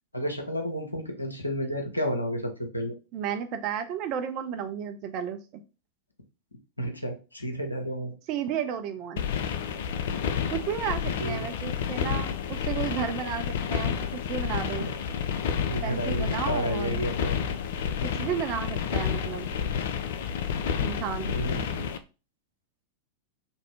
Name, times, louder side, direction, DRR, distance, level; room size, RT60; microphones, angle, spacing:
voice 1, 0.1-2.9 6.8-8.1 10.0-10.2 11.2-11.5 15.7-17.4 21.2-21.9, equal, 85° left, 3 dB, 0.7 m, -31 dB
voice 2, 3.1-5.4 8.3-9.3 10.5-14.8 15.8-17.0 18.0-19.5 20.8-21.7, right 8 dB, 40° right, 8 dB, 0.5 m, -33 dB
sound 1, 9.2-22.0, left 8 dB, 55° left, 0.3 m, -30 dB
sound 2, 15.4-21.3, left 4 dB, 35° left, 0.9 m, -41 dB
2.6 x 2.6 x 3.2 m, 0.31 s
figure-of-eight pair, 90°, 0 cm